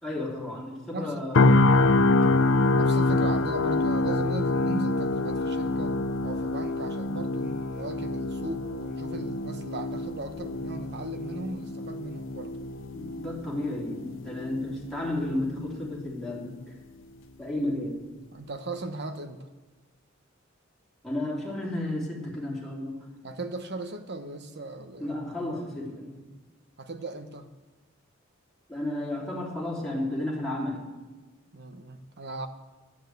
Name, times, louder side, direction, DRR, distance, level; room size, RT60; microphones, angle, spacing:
voice 1, 0.0-1.6 12.5-12.6 12.9-16.6 17.4-18.0 21.0-23.0 25.0-26.2 28.7-30.9, left 1 dB, ahead, -5 dB, 3.5 m, -32 dB
voice 2, 0.9-1.3 1.7-2.1 2.7-5.9 6.2-12.6 18.3-19.4 23.2-25.2 26.8-27.5 31.5-32.5, right 2 dB, 55° right, 8 dB, 1.1 m, -37 dB
sound 1, 1.3-15.3 15.7-15.9, left 2 dB, 65° left, 0.6 m, -26 dB
11.5 x 11.0 x 8.1 m, 1.2 s
head